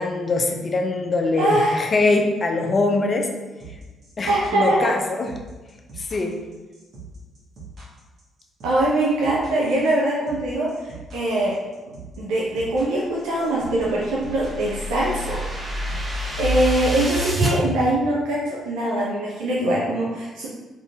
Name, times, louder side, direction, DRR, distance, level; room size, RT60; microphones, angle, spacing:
voice 1, 0.0-3.3 4.2-5.3 6.0-6.4, left 3 dB, 40° left, 3 dB, 0.6 m, -22 dB
voice 2, 1.4-1.8 4.3-4.9 8.6-11.6 12.2-15.5 16.4-20.5, right 1 dB, 65° right, -5 dB, 0.6 m, -22 dB
sound 1, 3.6-16.8, right 3 dB, 50° right, 1.3 m, -41 dB
sound 2, 13.5-17.5, right 1 dB, 25° right, 1.0 m, -27 dB
4.7 x 4.0 x 2.3 m, 1.2 s
figure-of-eight pair, 45°, 0 cm